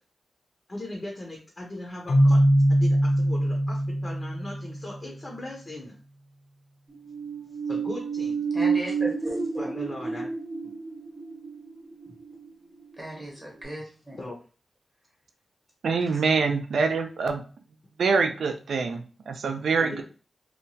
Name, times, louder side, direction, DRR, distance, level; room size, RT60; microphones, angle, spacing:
voice 1, 0.7-2.4 2.7-5.9 7.6-8.4 9.6-10.3 12.1-12.2 14.2-14.4 19.8-20.0, left 1 dB, 30° left, -1 dB, 0.5 m, -38 dB
Keyboard (musical), 2.1-5.0, equal, 70° left, 0.6 m, -22 dB
sound 1, 6.9-13.3 13.6-13.7, right 5 dB, 50° right, 0.8 m, -30 dB
voice 2, 8.5-9.8 13.0-14.2 16.1-16.2, equal, 15° right, -2 dB, 0.7 m, -37 dB
voice 3, 15.8-17.4 18.0-20.0, right 4 dB, 85° right, 6 dB, 0.4 m, -25 dB
2.8 x 2.2 x 2.7 m, 0.38 s
wide cardioid pair, 140°, 0 cm